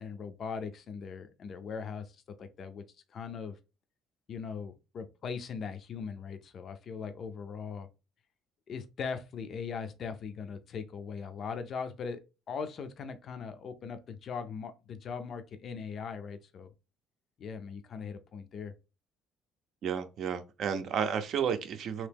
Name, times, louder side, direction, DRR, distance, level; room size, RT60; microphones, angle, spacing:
voice 1, 0.0-2.8 3.1-3.6 4.3-7.9 8.7-16.7 17.4-18.7, left 6 dB, 45° left, 0.4 m, -40 dB
voice 2, 19.8-22.1, right 7 dB, 55° right, 0.5 m, -32 dB
2.9 x 2.9 x 3.4 m
cardioid pair, 135°, 0 cm